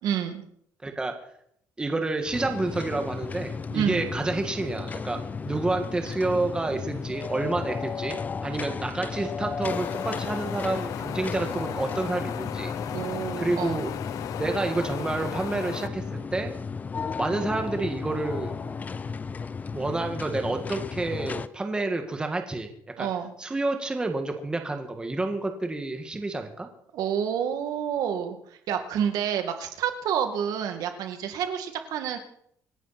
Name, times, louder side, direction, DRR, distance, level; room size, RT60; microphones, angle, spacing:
voice 1, 0.0-0.4 3.7-4.0 12.9-13.8 23.0-23.3 26.9-28.4 28.7-32.2, right 8 dB, 70° right, 6 dB, 2.2 m, -28 dB
voice 2, 0.8-1.1 1.8-5.2 5.4-12.7 13.4-13.9 14.4-16.5 17.2-18.6 19.7-22.7 23.0-23.1 23.4-26.7, right 2 dB, 15° right, 5 dB, 1.8 m, -29 dB
sound 1, 2.3-21.5, left 5 dB, 25° left, 0.6 m, -34 dB
Wind, 9.6-15.9, left 11 dB, 60° left, 0.7 m, -36 dB
27.0 x 11.0 x 4.3 m, 0.68 s
cardioid pair, 145°, 7 cm